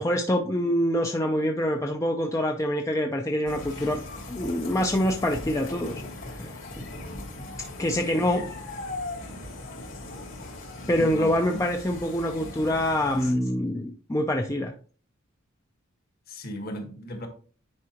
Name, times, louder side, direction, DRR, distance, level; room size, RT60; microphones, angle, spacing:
voice 1, 0.0-4.0 4.3-6.0 6.4-6.9 7.8-8.4 10.9-14.7, equal, 15° left, 0.5 m, -25 dB
sound 1, 3.4-13.3, left 2 dB, 65° left, 2.9 m, -39 dB
voice 2, 8.1-8.5 11.0-11.6 16.3-17.3, equal, 45° left, 1.5 m, -37 dB
9.7 x 4.7 x 2.9 m
head